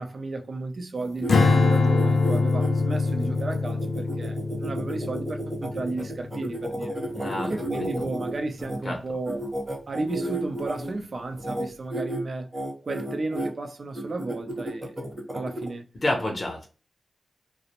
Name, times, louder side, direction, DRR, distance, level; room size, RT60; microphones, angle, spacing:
voice 1, 0.0-7.0 7.5-9.5 9.9-12.5 12.8-15.0 15.3-15.9, right 3 dB, 50° right, 0.4 m, -33 dB
sound 1, 1.0-8.8 9.2-10.9 11.3-11.6 11.9-12.2 12.5-13.5 13.9-15.7, right 1 dB, 25° right, 0.8 m, -33 dB
Strum, 1.3-7.7, left 4 dB, 90° left, 0.4 m, -24 dB
voice 2, 7.1-7.9 8.8-9.0 16.0-16.7, left 1 dB, 40° left, 0.6 m, -29 dB
2.4 x 2.0 x 2.8 m
wide cardioid pair, 105°, 0 cm